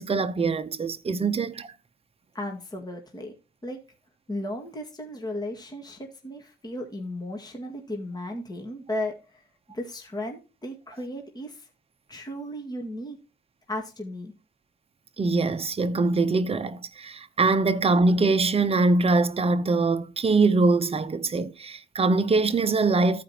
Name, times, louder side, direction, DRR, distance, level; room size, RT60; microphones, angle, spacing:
voice 1, 0.0-1.7 15.2-23.2, right 3 dB, 30° right, 0.8 m, -23 dB
voice 2, 2.3-3.3 3.6-3.8 4.3-9.5 9.7-11.7 12.1-13.2 13.7-14.3, left 1 dB, 20° left, 1.9 m, -35 dB
14.5 x 5.1 x 2.9 m
cardioid pair, 90°, 20 cm